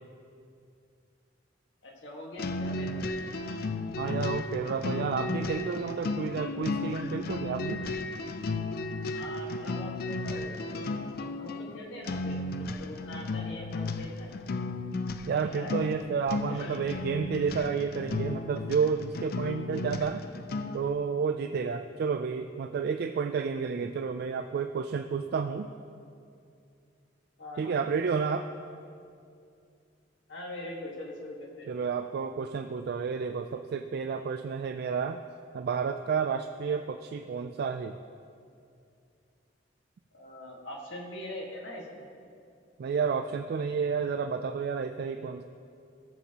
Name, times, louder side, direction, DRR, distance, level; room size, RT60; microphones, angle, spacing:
voice 1, 1.8-3.1 9.1-10.9 11.2-14.3 15.4-15.9 16.5-16.8 27.4-27.9 30.3-31.7 40.1-42.1, left 1 dB, 80° left, -1 dB, 1.6 m, -42 dB
sound 1, 2.4-20.9, left 3 dB, 55° left, 0.4 m, -34 dB
voice 2, 4.0-7.8 15.3-20.2 20.7-25.7 27.6-28.5 31.7-35.2 35.5-38.0 42.8-45.4, right 5 dB, 60° right, 7 dB, 0.3 m, -31 dB
16.5 x 7.2 x 2.9 m, 2.4 s
head